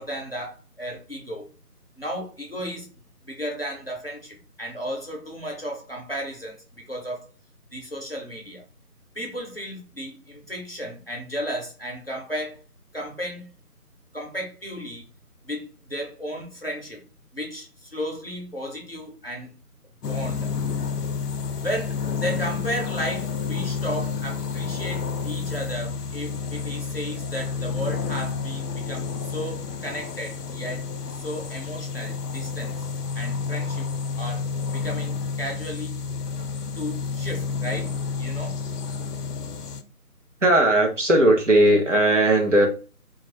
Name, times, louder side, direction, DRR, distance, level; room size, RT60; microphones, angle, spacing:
voice 1, 0.0-1.5 2.0-2.9 3.2-6.6 6.9-7.3 7.7-8.6 9.1-12.6 12.9-13.5 14.1-15.0 15.4-17.0 17.3-19.5 20.0-20.5 21.6-30.9 31.2-32.7 33.2-33.9 34.2-34.4 34.7-35.9 36.7-38.6, equal, 40° left, 0.6 m, -34 dB
sound 1, 20.0-39.8, left 5 dB, 80° left, 0.5 m, -30 dB
voice 2, 40.4-42.7, right 1 dB, 50° right, 0.6 m, -18 dB
2.2 x 2.1 x 3.0 m
figure-of-eight pair, 165°, 46 cm